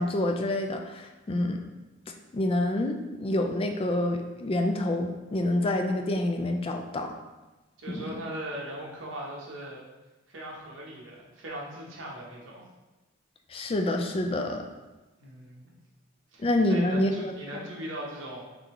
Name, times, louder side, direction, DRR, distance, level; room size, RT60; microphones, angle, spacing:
voice 1, 0.0-1.6 2.3-7.1 7.9-8.0 13.5-14.6 16.4-17.3, left 1 dB, 30° left, 4 dB, 0.3 m, -27 dB
voice 2, 7.8-9.8 10.3-12.6 15.2-15.8 16.3-18.6, right 1 dB, 70° right, -3 dB, 0.8 m, -39 dB
3.7 x 3.4 x 3.0 m, 1.1 s
head